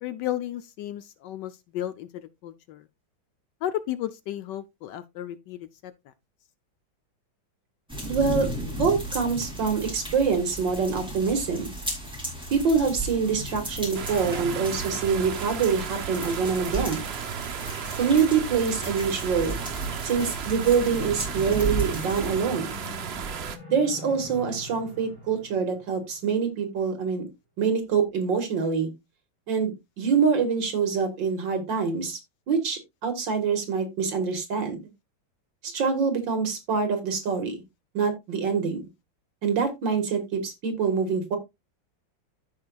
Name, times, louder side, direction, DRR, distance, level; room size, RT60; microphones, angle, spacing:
voice 1, 0.0-2.8 3.6-6.1, left 12 dB, 70° left, 1.2 m, -34 dB
sound 1, 7.9-22.4, right 1 dB, ahead, 2.6 m, -35 dB
voice 2, 8.1-8.5 8.8-11.7 12.5-17.1 18.0-19.6 20.0-22.7 23.7-27.2 27.6-28.9 29.5-32.2 32.5-34.9 35.6-37.6 37.9-38.8 39.4-41.4, right 5 dB, 70° right, 2.2 m, -25 dB
sound 2, 13.9-23.6, right 7 dB, 85° right, 0.5 m, -34 dB
sound 3, 21.3-26.7, left 2 dB, 40° right, 6.2 m, -45 dB
14.0 x 4.7 x 2.3 m
omnidirectional pair, 2.1 m